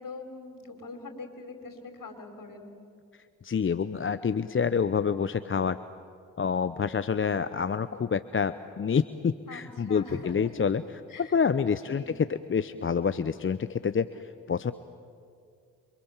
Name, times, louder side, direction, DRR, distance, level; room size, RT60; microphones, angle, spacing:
voice 1, 0.0-2.7 9.5-10.5 11.1-11.4 11.8-12.1, left 3 dB, 45° left, 5 dB, 4.8 m, -43 dB
voice 2, 3.4-5.8 6.4-14.7, left 6 dB, 25° left, 13 dB, 0.8 m, -28 dB
28.0 x 25.0 x 7.3 m, 2.4 s
hypercardioid pair, 45°, 45 cm